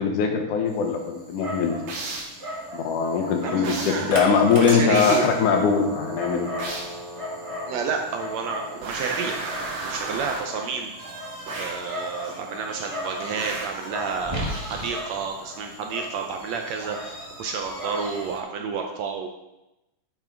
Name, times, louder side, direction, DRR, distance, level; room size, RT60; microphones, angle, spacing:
voice 1, 0.0-1.8 2.7-6.5, left 6 dB, 80° left, 4 dB, 2.5 m, -21 dB
Dog, 0.7-18.4, equal, 30° right, 0.6 m, -35 dB
sound 1, 1.9-2.4 3.6-4.1 4.9-5.4 6.6-7.0 8.8-10.6 11.5-11.9 13.4-13.9, right 3 dB, 90° right, 3.3 m, -33 dB
voice 2, 3.4-5.3 7.7-9.4 9.8-10.9 11.6-19.3, right 5 dB, 75° right, 3 dB, 1.7 m, -30 dB
9.0 x 6.0 x 4.5 m, 0.95 s
omnidirectional pair, 3.6 m